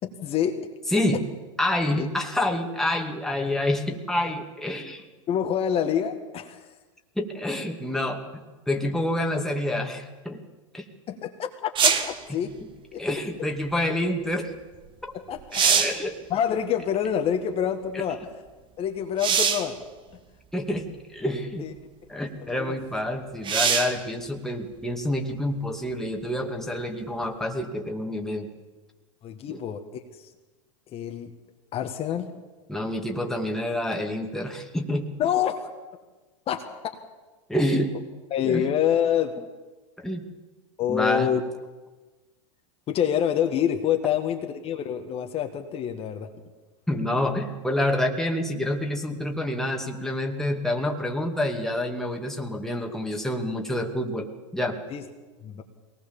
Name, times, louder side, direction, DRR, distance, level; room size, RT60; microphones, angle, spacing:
voice 1, 0.0-0.6 1.0-1.1 2.0-2.1 5.3-6.6 11.1-12.6 12.9-13.0 15.1-15.8 16.3-18.2 18.8-19.8 21.6-21.7 22.5-22.7 29.2-29.8 30.2-30.3 30.9-31.3 31.7-32.3 35.2-35.6 36.5-36.6 38.3-39.4 40.8-41.4 42.9-46.3 54.9-55.0 55.4-55.6, left 9 dB, 35° left, 4 dB, 1.9 m, -26 dB
voice 2, 1.6-5.1 7.2-8.2 8.7-10.4 10.7-10.8 13.0-14.5 15.6-16.2 17.9-18.0 20.5-21.7 22.1-28.5 29.5-29.6 32.7-35.1 37.5-37.9 38.4-38.7 40.0-40.2 40.9-41.3 46.9-54.3 54.5-54.8, left 1 dB, 5° left, 1 dB, 2.4 m, -27 dB
sound 1, 11.7-12.2 14.9-15.0 15.4-16.1 19.2-19.7 20.7-20.8 23.4-24.0 27.6-27.7, right 7 dB, 30° right, 1.7 m, -22 dB
22.5 x 19.0 x 7.3 m, 1.2 s
hypercardioid pair, 105°, 17 cm